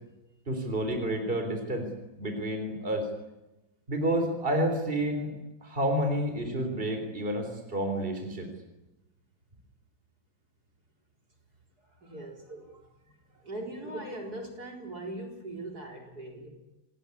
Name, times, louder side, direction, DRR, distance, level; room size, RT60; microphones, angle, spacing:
voice 1, 0.5-1.9 2.2-3.1 3.9-5.4 5.6-8.5 12.5-12.6, right 1 dB, 25° right, 5 dB, 4.1 m, -29 dB
voice 2, 11.8-16.5, right 1 dB, 50° right, 1 dB, 4.6 m, -41 dB
28.0 x 19.5 x 9.9 m, 0.99 s
omnidirectional pair, 2.2 m